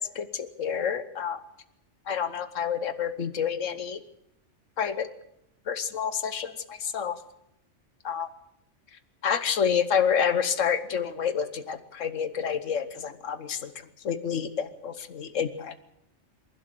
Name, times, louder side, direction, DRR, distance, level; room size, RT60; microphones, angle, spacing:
voice 1, 0.1-1.4 2.1-4.0 4.8-5.1 5.7-7.1 8.0-8.3 9.2-13.7 14.0-15.8, left 7 dB, 85° left, 11 dB, 1.5 m, -28 dB
26.5 x 12.0 x 8.4 m, 0.81 s
omnidirectional pair, 1.3 m